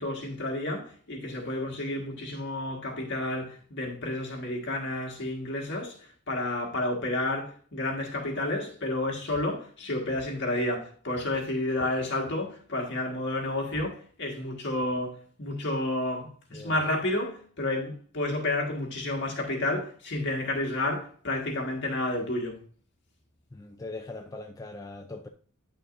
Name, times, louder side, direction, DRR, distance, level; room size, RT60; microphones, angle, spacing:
voice 1, 0.0-22.6, left 1 dB, 55° left, 1.7 m, -31 dB
voice 2, 23.5-25.3, left 2 dB, 15° left, 0.4 m, -41 dB
9.4 x 6.2 x 2.6 m
head